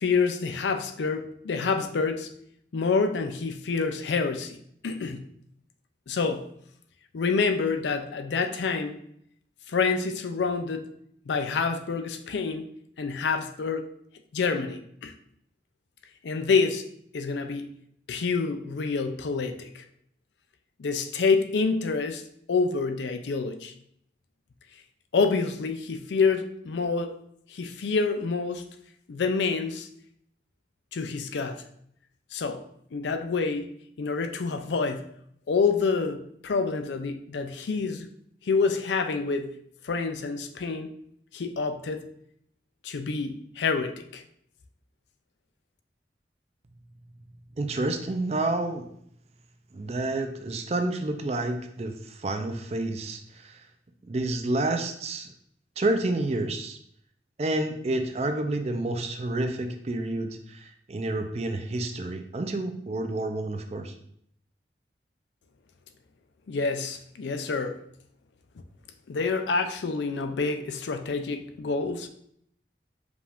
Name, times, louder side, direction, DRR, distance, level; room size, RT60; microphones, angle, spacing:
voice 1, 0.0-2.3 2.7-5.2 6.1-6.4 7.1-9.0 9.7-10.9 11.3-12.7 13.0-13.8 14.3-15.1 16.2-16.9 17.1-17.7 18.1-19.8 20.8-22.2 22.5-23.7 25.1-27.2 27.5-28.6 29.1-29.9 30.9-31.6 32.3-32.6 32.9-33.6 34.0-35.0 35.5-38.1 38.5-39.5 39.8-40.9 41.3-42.0 42.8-44.2 66.5-67.8 69.1-72.1, left 4 dB, 85° left, 0.4 m, -27 dB
voice 2, 47.6-48.9 49.7-53.6 54.1-55.3 55.8-56.8 57.4-63.9, right 2 dB, 35° right, 0.4 m, -29 dB
4.9 x 2.5 x 3.4 m
head